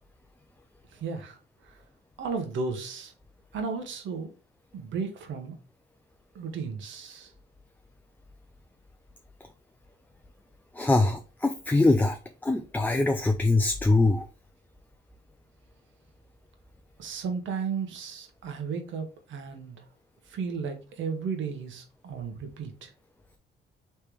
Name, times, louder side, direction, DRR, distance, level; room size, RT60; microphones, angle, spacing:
voice 1, 1.0-1.4 2.2-3.1 3.5-4.3 4.7-5.5 6.3-7.3 17.0-19.7 20.3-22.9, right 5 dB, 75° right, 1.2 m, -34 dB
voice 2, 10.7-14.3, left 2 dB, 10° left, 0.4 m, -23 dB
3.4 x 3.3 x 4.5 m
cardioid pair, 90°, 20 cm